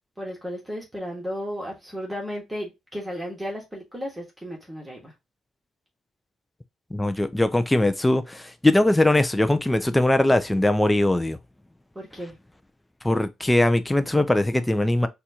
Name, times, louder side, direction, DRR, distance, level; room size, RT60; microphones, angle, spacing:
voice 1, 0.2-5.1 11.9-12.4, equal, 10° right, 1.3 m, -34 dB
voice 2, 6.9-11.4 13.0-15.1, left 1 dB, 10° left, 0.4 m, -21 dB
4.1 x 2.4 x 2.8 m
cardioid pair, 90°, 0 cm